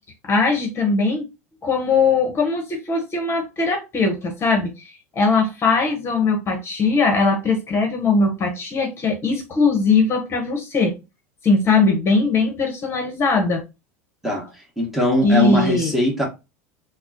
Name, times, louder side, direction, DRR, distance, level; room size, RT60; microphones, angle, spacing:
voice 1, 0.2-1.2 1.6-4.9 5.2-10.9 11.4-13.6 15.2-15.9, left 4 dB, 35° left, 1.1 m, -20 dB
voice 2, 14.8-16.2, equal, 5° right, 1.4 m, -21 dB
4.0 x 2.2 x 2.8 m
hypercardioid pair, 80°, 8 cm